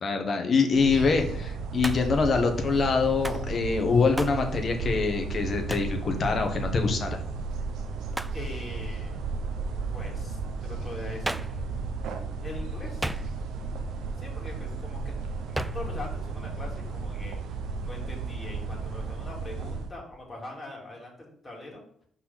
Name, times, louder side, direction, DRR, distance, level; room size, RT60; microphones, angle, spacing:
voice 1, 0.0-7.2, left 4 dB, 45° left, 5 dB, 1.3 m, -25 dB
sound 1, 0.7-19.9, right 4 dB, 80° right, 0.8 m, -34 dB
Hands, 1.8-2.2 3.2-3.5 4.2-4.4 5.7-6.0 8.1-8.4 11.2-11.6 13.0-13.6 15.5-15.9, right 1 dB, 10° right, 0.3 m, -34 dB
voice 2, 8.3-9.2 9.9-11.4 12.4-13.1 14.2-17.4 17.8-21.8, left 2 dB, 25° left, -2 dB, 2.8 m, -42 dB
5.4 x 4.3 x 5.8 m, 0.62 s
cardioid pair, 90°, 0 cm